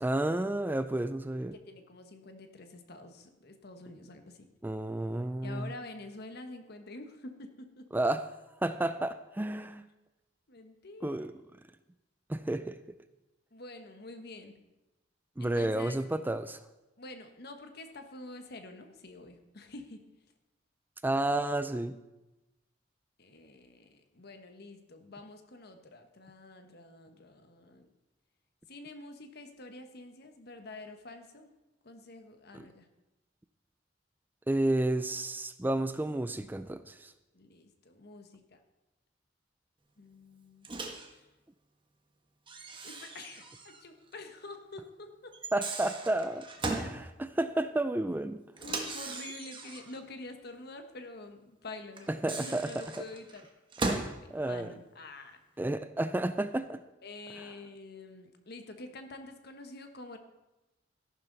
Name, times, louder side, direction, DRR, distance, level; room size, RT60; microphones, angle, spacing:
voice 1, 0.0-1.5 4.6-5.7 7.9-8.2 8.6-9.8 11.0-11.3 12.3-12.8 15.4-16.6 21.0-22.0 32.5-32.7 34.5-37.1 45.5-48.4 52.1-52.7 53.8-54.7 55.6-56.8, right 1 dB, 10° right, 12 dB, 0.4 m, -31 dB
voice 2, 1.5-4.4 5.4-7.9 10.5-11.3 13.5-14.6 15.4-16.0 17.0-20.0 23.2-27.9 28.7-31.5 31.8-32.9 37.3-38.6 40.0-40.7 41.1-41.3 42.8-45.3 46.8-47.0 47.4-47.5 48.6-53.4 54.4-55.4 57.0-60.2, left 2 dB, 60° left, 6 dB, 1.4 m, -47 dB
Microwave oven, 40.6-41.1 42.5-43.8 44.1-44.2 45.3-46.9 48.6-50.0 52.0-54.2, right 3 dB, 25° right, 1.4 m, -38 dB
13.5 x 11.5 x 4.0 m, 1.0 s
head